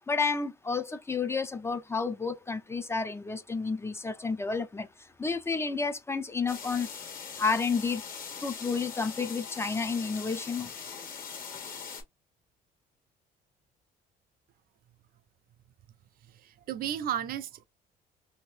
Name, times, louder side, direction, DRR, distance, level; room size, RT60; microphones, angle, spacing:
voice 1, 0.1-4.9 5.2-6.9 7.4-8.0 8.4-10.7, left 4 dB, 15° left, 0.4 m, -30 dB
sound 1, 6.5-12.0, left 6 dB, 55° left, 1.4 m, -41 dB
voice 2, 16.3-17.6, right 10 dB, 60° right, 0.4 m, -34 dB
2.7 x 2.5 x 3.1 m
cardioid pair, 110°, 17 cm